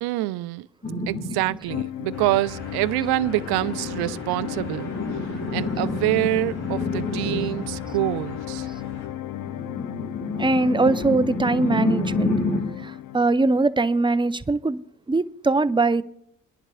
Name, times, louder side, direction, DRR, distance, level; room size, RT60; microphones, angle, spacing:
voice 1, 0.0-0.7 1.1-4.9 5.5-8.7, right 19 dB, 70° right, 0.5 m, -26 dB
sound 1, 0.8-1.6 3.3-7.8 9.3-12.8, left 2 dB, 25° left, 1.8 m, -29 dB
sound 2, 1.7-13.6, left 13 dB, 55° left, 0.5 m, -34 dB
sound 3, 2.1-9.1, left 1 dB, 75° left, 3.0 m, -42 dB
voice 2, 10.4-12.3 12.8-14.8 15.1-16.0, right 3 dB, 15° right, 0.5 m, -21 dB
30.0 x 11.0 x 2.3 m
hypercardioid pair, 50°, 40 cm